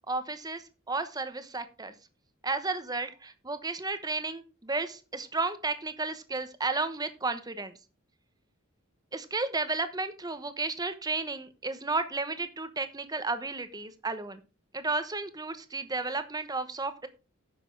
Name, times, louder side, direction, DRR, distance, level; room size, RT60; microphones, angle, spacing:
voice 1, 0.1-1.9 2.4-7.7 9.1-14.4 14.7-17.1, right 3 dB, 15° right, 10 dB, 1.0 m, -33 dB
10.0 x 6.8 x 4.7 m, 0.31 s
head